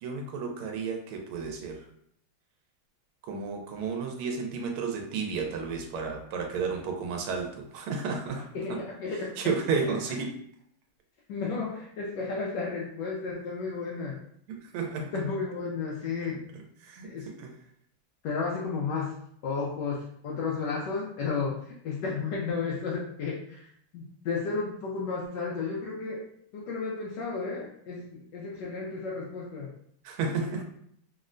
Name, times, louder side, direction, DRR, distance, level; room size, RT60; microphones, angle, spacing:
voice 1, 0.0-1.8 3.2-8.4 8.7-8.8 9.4-10.4 14.5-15.1 16.2-17.5 30.0-30.6, right 5 dB, 85° right, 2 dB, 1.5 m, -32 dB
voice 2, 8.5-9.3 9.8-9.9 11.3-14.2 15.1-16.4 17.0-17.3 18.2-19.1 19.4-23.6 23.9-26.2 26.5-29.7 30.3-30.6, left 4 dB, 75° left, -4 dB, 1.0 m, -33 dB
3.7 x 2.1 x 2.4 m, 0.66 s
omnidirectional pair, 2.3 m